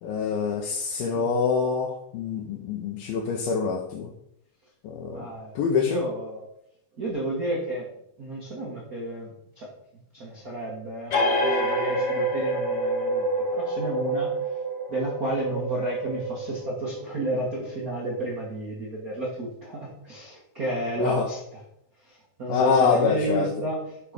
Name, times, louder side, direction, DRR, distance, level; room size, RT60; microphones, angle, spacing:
voice 1, 0.0-4.1 4.8-5.3 5.6-6.0 21.0-21.3 22.5-23.5, left 5 dB, 90° left, 1 dB, 2.7 m, -25 dB
voice 2, 5.1-6.5 7.0-7.9 8.2-9.7 10.1-14.3 14.9-21.6 22.0-24.1, right 1 dB, 90° right, -4 dB, 0.7 m, -32 dB
sound 1, 11.1-18.3, right 1 dB, 55° left, 1.8 m, -28 dB
7.2 x 4.9 x 5.1 m, 0.76 s
omnidirectional pair, 4.2 m